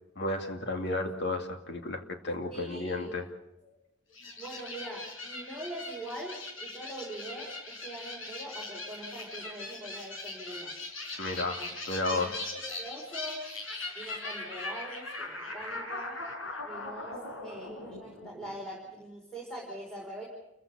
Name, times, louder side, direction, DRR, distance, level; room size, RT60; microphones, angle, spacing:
voice 1, 0.2-3.3 11.2-12.4, left 2 dB, 60° left, 4 dB, 2.4 m, -33 dB
voice 2, 2.5-3.1 4.4-10.7 11.6-11.7 12.1-13.5 13.9-16.2 16.6-20.2, right 1 dB, 5° left, -4 dB, 4.8 m, -43 dB
sound 1, 4.1-18.8, left 2 dB, 85° left, 5.1 m, -40 dB
29.5 x 15.0 x 6.8 m, 0.92 s
head